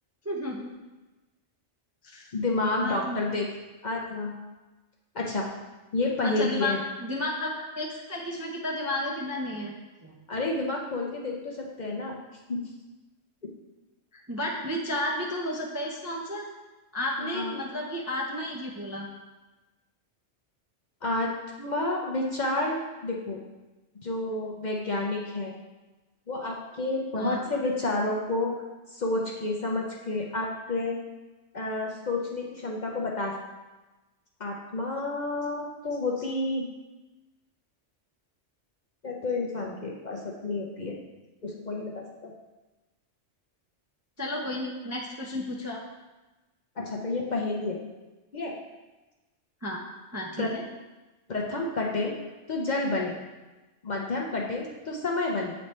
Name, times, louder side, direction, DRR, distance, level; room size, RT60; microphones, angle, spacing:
voice 1, 0.2-0.7 2.0-2.3 2.8-3.3 6.2-9.7 10.0-10.2 14.1-16.5 16.9-19.1 27.1-27.5 44.2-45.8 49.6-49.8 50.1-50.6, left 1 dB, 20° right, -2 dB, 0.4 m, -32 dB
voice 2, 2.3-3.5 3.8-4.3 5.1-5.5 5.9-6.8 10.3-12.2 12.5-12.6 17.2-17.5 21.0-21.3 21.6-23.4 24.0-25.5 26.3-28.5 28.9-31.0 31.5-33.4 34.4-36.6 39.0-41.0 41.4-42.3 46.8-47.8 48.3-48.6 50.4-50.5 51.3-52.1 52.5-53.2 53.8-55.5, left 2 dB, 45° left, -1 dB, 0.7 m, -30 dB
7.9 x 3.2 x 4.2 m, 1.1 s
omnidirectional pair, 1.2 m